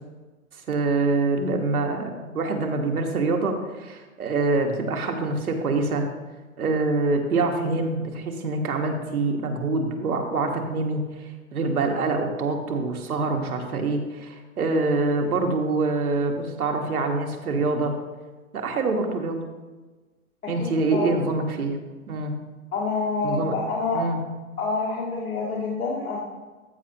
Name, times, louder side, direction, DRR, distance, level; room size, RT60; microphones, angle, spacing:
voice 1, 0.7-6.0 6.6-11.0 11.5-17.9 18.5-19.4 20.5-21.7 22.1-22.3 23.2-23.6 23.9-24.2, right 3 dB, 90° right, 3 dB, 1.7 m, -25 dB
voice 2, 20.4-21.3 22.7-24.0 24.6-26.2, left 4 dB, 85° left, -6 dB, 2.1 m, -28 dB
14.5 x 5.7 x 2.9 m, 1.3 s
hypercardioid pair, 170°, 43 cm